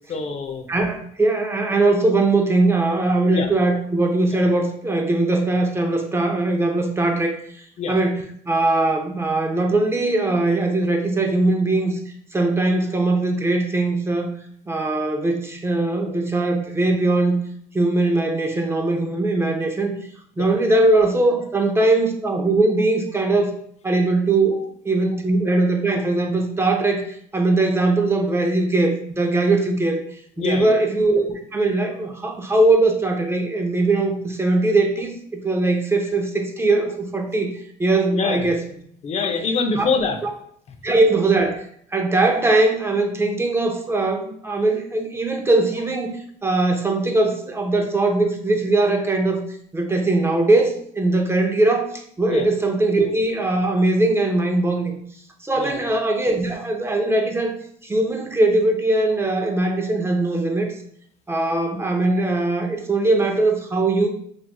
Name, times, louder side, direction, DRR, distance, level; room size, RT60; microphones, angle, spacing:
voice 1, 0.1-0.7 3.3-3.5 7.8-8.0 20.4-20.5 30.4-30.7 38.1-38.5 39.0-40.2 40.7-40.8 52.3-52.4 55.6-55.8, left 4 dB, 40° left, 5 dB, 0.6 m, -25 dB
voice 2, 0.7-7.4 7.9-12.0 12.3-14.3 14.7-17.4 17.7-20.0 20.4-23.5 23.8-30.0 30.4-37.5 37.8-38.6 39.8-39.9 40.2-40.3 40.8-41.6 41.9-49.4 49.7-54.9 55.4-57.5 57.8-60.7 61.3-64.1, right 2 dB, 15° right, 3 dB, 0.6 m, -20 dB
4.9 x 3.0 x 2.3 m, 0.64 s
cardioid pair, 110°, 17 cm